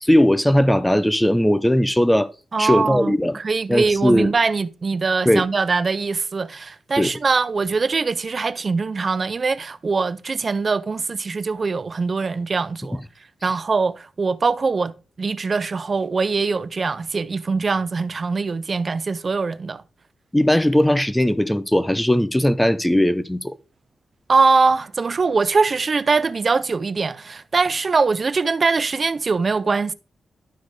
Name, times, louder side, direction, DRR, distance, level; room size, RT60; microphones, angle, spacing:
voice 1, 0.0-2.3 2.6-3.4 3.7-4.4 5.3-5.5 7.0-7.1 13.4-13.5 20.3-23.5, left 1 dB, 5° left, 0.5 m, -18 dB
voice 2, 2.5-13.0 13.4-14.9 15.2-19.8 24.3-29.9, right 4 dB, 45° right, 0.4 m, -22 dB
11.5 x 4.2 x 4.7 m
cardioid pair, 85°, 0 cm